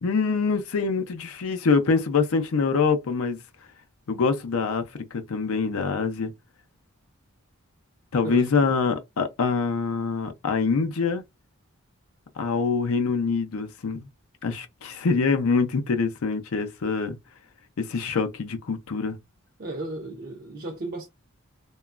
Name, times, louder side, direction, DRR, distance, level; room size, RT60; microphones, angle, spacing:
voice 1, 0.0-3.4 4.1-4.8 5.1-6.3 8.1-11.2 12.4-14.0 14.4-17.2 17.8-19.2, left 4 dB, 80° left, 0.5 m, -25 dB
voice 2, 8.2-8.7 19.6-21.1, right 1 dB, 45° right, 0.5 m, -34 dB
2.9 x 2.2 x 2.3 m
head